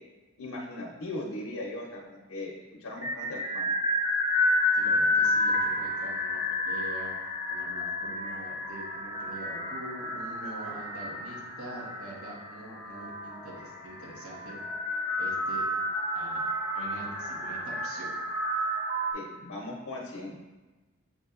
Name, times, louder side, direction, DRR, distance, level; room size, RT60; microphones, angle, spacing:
voice 1, 0.4-3.7 19.1-20.4, left 1 dB, 85° left, -2 dB, 0.7 m, -39 dB
sound 1, 3.0-19.1, left 1 dB, 10° right, 0.6 m, -30 dB
voice 2, 4.7-14.6 15.2-15.6 16.1-16.4 16.7-18.1, right 1 dB, 85° right, -5 dB, 1.3 m, -44 dB
7.0 x 2.7 x 2.4 m, 1.2 s
head